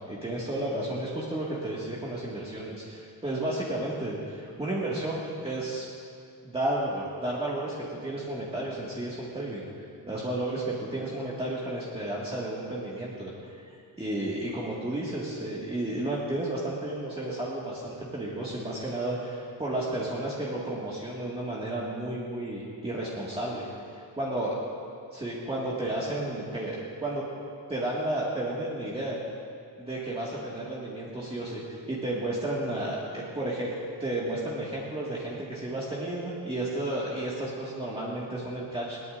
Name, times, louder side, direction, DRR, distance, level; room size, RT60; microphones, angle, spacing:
voice 1, 0.1-5.8 6.4-9.7 10.0-13.3 13.6-23.7 24.2-24.5 25.1-27.2 27.7-29.2 29.8-33.7 34.0-39.0, right 1 dB, 15° right, -7 dB, 2.0 m, -32 dB
21.0 x 18.5 x 2.6 m, 2.4 s
cardioid pair, 145°, 42 cm